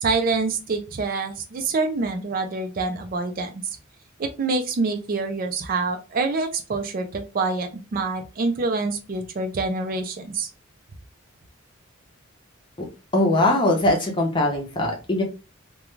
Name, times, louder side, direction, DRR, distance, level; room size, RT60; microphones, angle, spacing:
voice 1, 0.0-3.8 4.2-10.5, right 3 dB, 40° right, 5 dB, 0.4 m, -26 dB
voice 2, 13.1-15.2, left 1 dB, 25° left, 1 dB, 0.6 m, -21 dB
2.4 x 2.2 x 3.0 m, 0.31 s
head